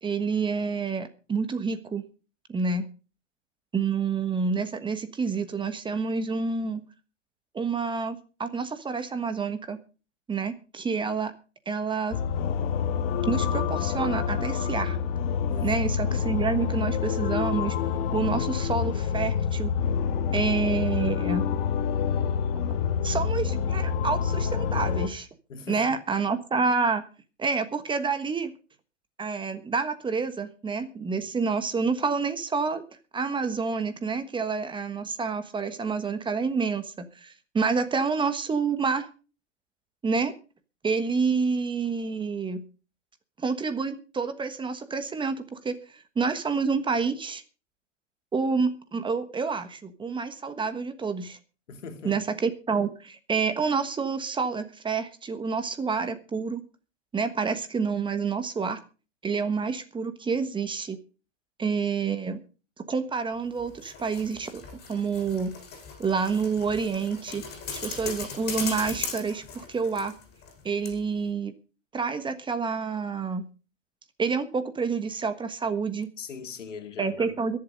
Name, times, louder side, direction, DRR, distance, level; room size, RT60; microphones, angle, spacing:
voice 1, 0.0-2.0 2.5-2.9 3.7-6.8 7.5-9.8 10.3-11.3 11.6-12.2 13.3-15.0 15.6-17.8 18.1-19.7 20.3-21.4 23.0-25.3 25.7-27.0 27.4-28.5 29.2-32.8 33.1-39.1 40.0-40.3 40.8-42.6 43.4-47.4 48.3-51.4 52.0-56.6 57.1-58.8 59.2-61.0 61.6-62.4 62.9-64.6 64.9-65.5 66.0-67.4 67.7-70.1 70.6-71.5 71.9-73.5 74.2-76.1 77.0-77.6, right 5 dB, 15° right, 1.4 m, -28 dB
sound 1, 12.1-25.1, left 7 dB, 50° left, 1.6 m, -27 dB
voice 2, 15.5-15.8 25.5-26.0 51.7-52.2 76.2-77.6, left 5 dB, 80° left, 2.5 m, -40 dB
sound 2, 63.6-70.6 70.8-70.9, left 6 dB, 25° left, 7.1 m, -38 dB
22.0 x 7.6 x 5.2 m
hypercardioid pair, 115°, 36 cm